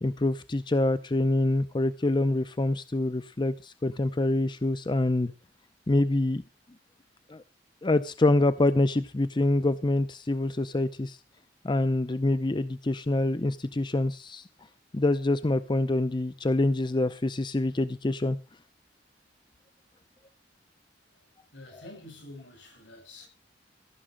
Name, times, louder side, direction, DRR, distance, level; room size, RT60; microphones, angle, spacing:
voice 1, 0.0-5.3 5.9-6.4 7.3-7.4 7.8-11.2 11.6-14.4 14.9-18.4, left 2 dB, 25° left, 0.5 m, -26 dB
voice 2, 21.5-23.3, left 2 dB, 80° left, 6.0 m, -48 dB
15.0 x 6.1 x 7.6 m
head